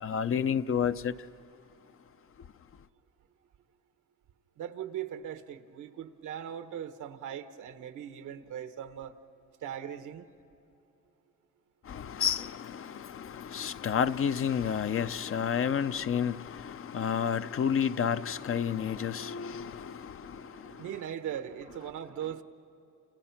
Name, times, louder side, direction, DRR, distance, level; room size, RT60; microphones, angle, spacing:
voice 1, 0.0-1.1 11.9-20.8, left 8 dB, 45° left, 0.7 m, -30 dB
voice 2, 4.6-9.1 9.6-10.3 20.0-22.4, right 9 dB, 80° right, 1.2 m, -40 dB
29.0 x 28.5 x 5.9 m
cardioid pair, 90°, 30 cm